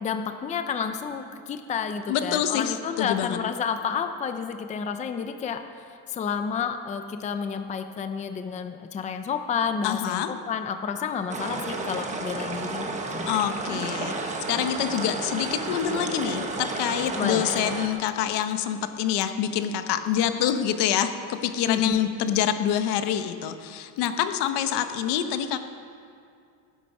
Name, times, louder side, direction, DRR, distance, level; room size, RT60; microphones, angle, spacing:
voice 1, 0.0-13.3 17.2-17.7 21.7-22.0, left 6 dB, 20° left, 8 dB, 0.5 m, -30 dB
voice 2, 2.1-3.4 9.8-10.3 13.3-25.6, left 10 dB, 80° left, 8 dB, 1.1 m, -26 dB
Small River, 11.3-17.9, right 3 dB, 20° right, 1.1 m, -32 dB
18.5 x 10.0 x 5.4 m, 2.4 s
cardioid pair, 175°, 39 cm